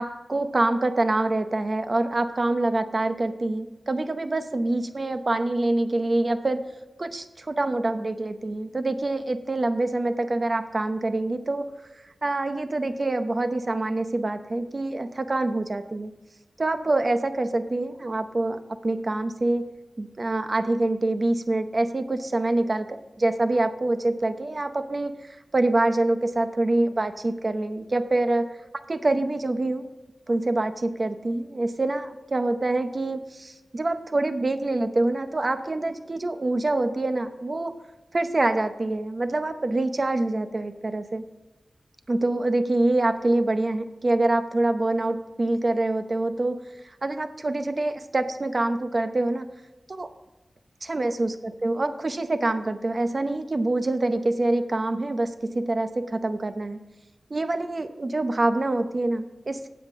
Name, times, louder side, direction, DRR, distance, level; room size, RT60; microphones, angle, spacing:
voice 1, 0.0-6.6 7.0-11.7 12.2-16.1 16.6-19.7 20.0-28.5 28.9-29.9 30.3-37.7 38.1-41.2 42.1-46.6 46.8-49.5 49.9-50.1 50.9-56.8 57.3-59.7, right 2 dB, 40° right, 9 dB, 0.8 m, -25 dB
12.5 x 8.0 x 3.7 m, 1.1 s
wide cardioid pair, 105°, 0 cm